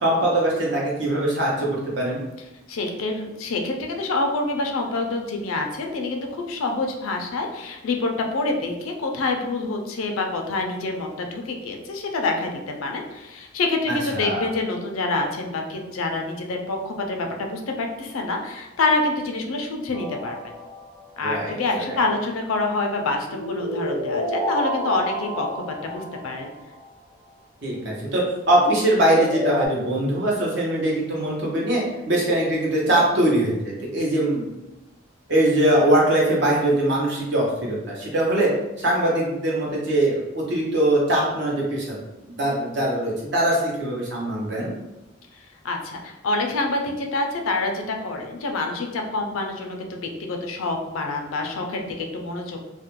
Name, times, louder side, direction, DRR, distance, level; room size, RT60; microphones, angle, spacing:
voice 1, 0.0-2.2 14.1-14.5 21.2-22.0 27.6-34.6 35.3-38.5 38.8-44.7, right 1 dB, 55° right, -3 dB, 0.7 m, -22 dB
voice 2, 2.7-20.5 21.2-26.5 45.6-52.6, left 3 dB, 90° left, 3 dB, 0.4 m, -27 dB
sound 1, 19.9-21.0 23.3-26.6 28.9-29.7, left 1 dB, 10° right, 0.4 m, -29 dB
2.4 x 2.1 x 2.9 m, 0.98 s
head